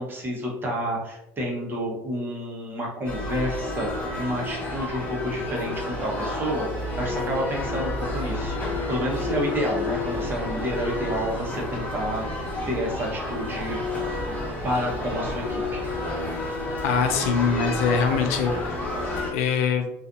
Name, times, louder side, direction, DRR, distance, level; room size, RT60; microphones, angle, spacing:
voice 1, 0.0-13.8 14.6-15.8, equal, 30° right, -2 dB, 0.9 m, -30 dB
sound 1, 3.0-19.3, left 2 dB, 20° left, 1.2 m, -30 dB
sound 2, 6.3-18.7, right 1 dB, 70° right, 0.4 m, -40 dB
voice 2, 16.8-18.8 19.1-19.9, left 6 dB, 85° left, 5 dB, 0.4 m, -24 dB
2.5 x 2.4 x 2.4 m, 0.88 s
supercardioid pair, 90°, 8 cm